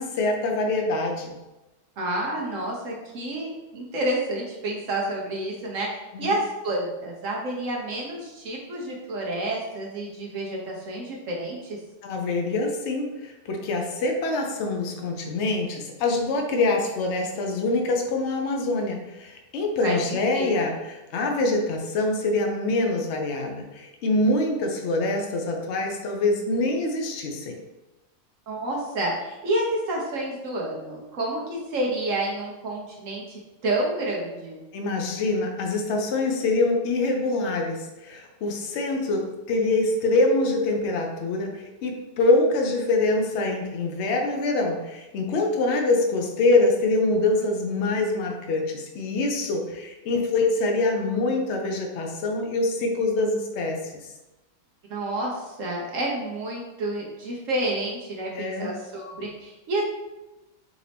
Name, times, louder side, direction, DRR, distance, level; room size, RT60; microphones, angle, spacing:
voice 1, 0.0-1.3 6.1-6.3 12.0-27.6 34.7-53.9 58.3-58.7, left 2 dB, 75° left, 2 dB, 0.6 m, -25 dB
voice 2, 2.0-11.8 19.8-20.0 20.3-20.5 28.5-34.6 54.9-59.8, right 1 dB, 60° right, -2 dB, 0.9 m, -29 dB
4.9 x 2.6 x 3.4 m, 1.0 s
omnidirectional pair, 1.9 m